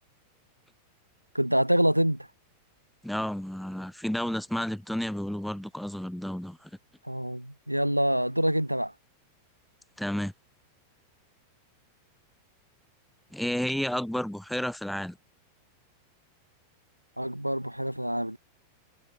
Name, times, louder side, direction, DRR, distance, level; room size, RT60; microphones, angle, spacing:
voice 1, 1.3-2.3 7.0-8.9 17.2-18.4, equal, 90° right, 1.3 m, -26 dB
voice 2, 3.0-6.7 10.0-10.3 13.3-15.2, equal, ahead, 4.4 m, -31 dB
figure-of-eight pair, 90°, 0 cm